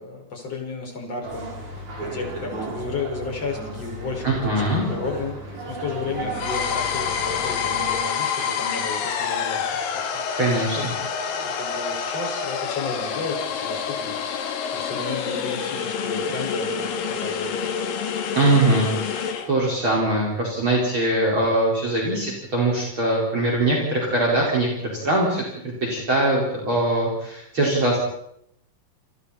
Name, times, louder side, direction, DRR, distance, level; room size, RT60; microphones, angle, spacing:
voice 1, 0.0-10.1 10.7-14.2 14.7-17.7, left 4 dB, 45° left, 1 dB, 6.7 m, -33 dB
sound 1, 1.2-8.0, right 1 dB, 60° right, 7.5 m, -34 dB
voice 2, 4.2-4.8 10.3-10.8 18.3-28.0, right 2 dB, 35° right, -2 dB, 5.7 m, -22 dB
sound 2, 6.3-19.5, left 7 dB, 80° left, 3.6 m, -27 dB
30.0 x 28.5 x 4.4 m, 0.75 s
omnidirectional pair, 4.0 m